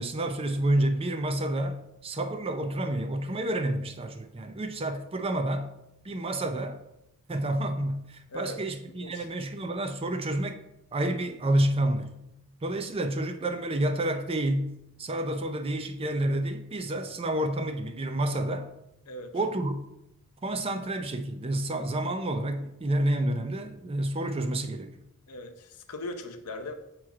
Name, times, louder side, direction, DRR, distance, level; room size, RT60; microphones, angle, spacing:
voice 1, 0.0-5.7 6.0-6.8 7.3-10.6 10.9-12.1 12.6-14.7 15.0-18.7 19.3-19.8 20.4-24.9, right 1 dB, 25° right, 0.5 m, -29 dB
voice 2, 8.9-9.3 19.1-19.4 25.3-26.7, left 1 dB, 90° left, 0.7 m, -39 dB
7.4 x 3.1 x 4.8 m
head